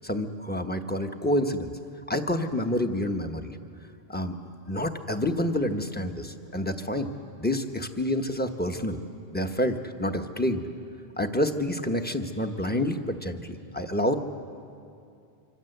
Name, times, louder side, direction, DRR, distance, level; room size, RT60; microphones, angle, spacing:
voice 1, 0.0-1.7 2.1-3.6 4.1-4.4 4.7-7.1 7.4-9.0 9.3-10.7 11.2-14.2, left 1 dB, 10° left, 5 dB, 1.1 m, -28 dB
26.0 x 25.5 x 8.0 m, 2.5 s
omnidirectional pair, 1.1 m